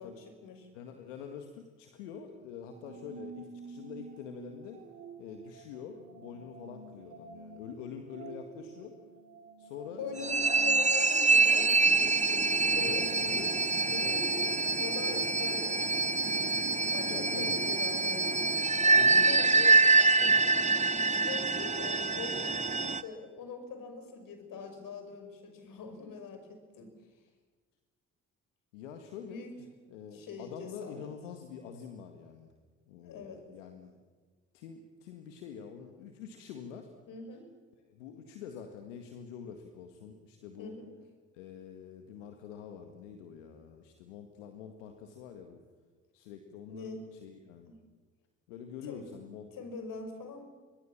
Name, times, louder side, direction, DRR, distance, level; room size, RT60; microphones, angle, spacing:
voice 1, 0.0-0.7 10.0-13.3 13.9-16.0 16.3-16.4 16.9-18.6 19.0-19.5 21.1-26.9 29.3-29.5 30.1-31.1 33.0-33.4 37.1-37.5 40.6-40.9 46.7-47.1 47.7-47.8 48.8-49.0 49.5-50.4, left 4 dB, 65° left, 6 dB, 5.9 m, -43 dB
voice 2, 0.7-4.8 5.2-8.9 9.6-10.5 12.7-13.5 13.9-15.5 15.9-16.1 17.0-17.8 18.7-19.8 20.2-20.4 28.7-29.5 29.9-32.5 32.9-34.0 34.5-36.9 37.9-40.8 41.3-45.6 46.1-47.7 48.5-49.5, left 7 dB, 85° left, 5 dB, 1.9 m, -45 dB
sound 1, 2.7-19.1, right 3 dB, 65° right, 7.4 m, -50 dB
sound 2, 10.2-23.0, right 3 dB, 20° right, 1.3 m, -26 dB
29.0 x 23.5 x 7.3 m, 1.4 s
hypercardioid pair, 50°, 35 cm